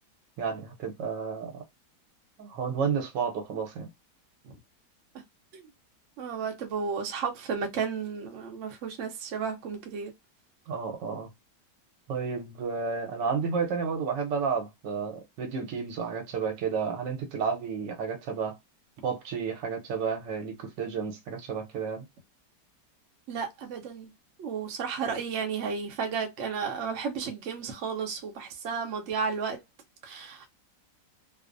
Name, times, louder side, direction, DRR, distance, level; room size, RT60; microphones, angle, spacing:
voice 1, 0.4-1.6 2.4-3.9 10.7-11.3 12.1-18.6 19.0-22.0, right 6 dB, 80° right, 1.4 m, -31 dB
voice 2, 6.2-10.1 23.3-24.1 24.4-29.6 30.0-30.5, right 6 dB, 60° right, 0.8 m, -33 dB
3.2 x 2.0 x 2.4 m
omnidirectional pair, 1.9 m